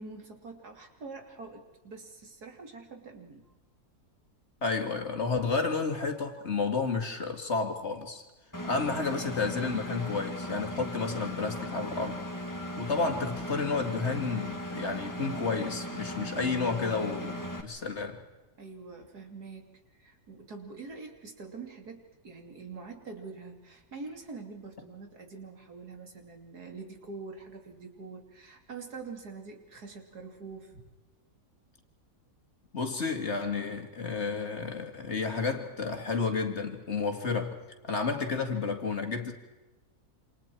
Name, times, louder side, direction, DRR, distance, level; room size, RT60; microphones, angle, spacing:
voice 1, 0.0-3.4 18.6-30.8, right 4 dB, 90° right, 3 dB, 3.4 m, -45 dB
voice 2, 4.6-8.2 8.6-12.2 12.8-18.2 32.7-37.6 37.8-39.3, left 4 dB, 45° left, 5 dB, 2.5 m, -31 dB
Engine, 8.5-17.6, equal, 10° left, 2.0 m, -38 dB
28.0 x 27.0 x 4.6 m, 1.1 s
omnidirectional pair, 1.6 m